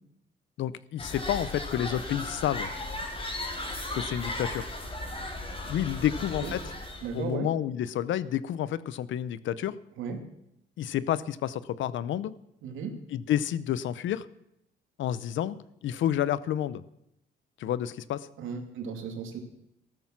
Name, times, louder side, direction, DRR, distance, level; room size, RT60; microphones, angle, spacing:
voice 1, 0.6-2.7 3.9-4.7 5.7-6.6 7.1-9.8 10.8-12.3 13.1-14.3 15.0-15.6 15.8-16.8 17.6-18.3, left 11 dB, 75° left, 17 dB, 0.8 m, -29 dB
sound 1, 1.0-7.2, left 2 dB, 30° left, 4.3 m, -36 dB
voice 2, 7.0-7.5 10.0-10.2 12.6-13.0 18.4-19.4, right 6 dB, 80° right, 4 dB, 2.7 m, -35 dB
14.0 x 13.5 x 6.0 m, 0.81 s
cardioid pair, 90°, 20 cm